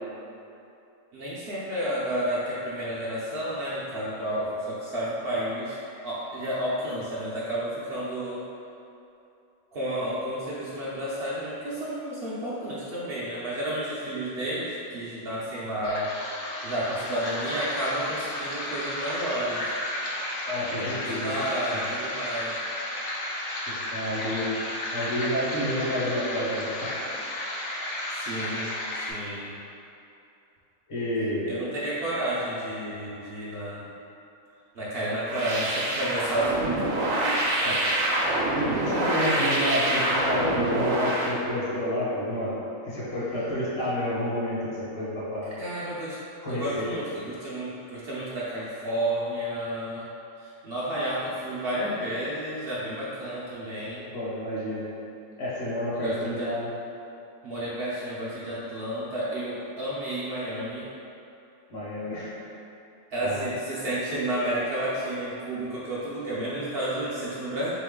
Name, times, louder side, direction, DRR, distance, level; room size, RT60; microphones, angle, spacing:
voice 1, 1.1-8.4 9.7-16.1 16.6-19.7 20.6-22.6 28.1-28.7 29.1-29.5 31.5-33.8 34.7-37.4 45.6-46.2 46.5-50.1 50.4-54.1 55.9-56.5 57.4-60.9 63.1-67.7, right 1 dB, 60° right, -8 dB, 0.7 m, -31 dB
sound 1, 15.8-29.1, left 1 dB, 80° left, 1.0 m, -33 dB
voice 2, 20.5-21.3 21.7-21.8 23.7-24.6 24.9-26.9 30.9-31.5 37.6-37.9 38.5-42.5 42.8-45.5 46.4-46.9 54.1-54.9 55.4-56.7 61.7-62.3 63.2-63.4, equal, 50° left, -9 dB, 1.2 m, -29 dB
sound 2, 35.3-41.3, right 1 dB, 75° right, 1.0 m, -26 dB
3.6 x 3.0 x 3.6 m, 2.7 s
omnidirectional pair, 1.4 m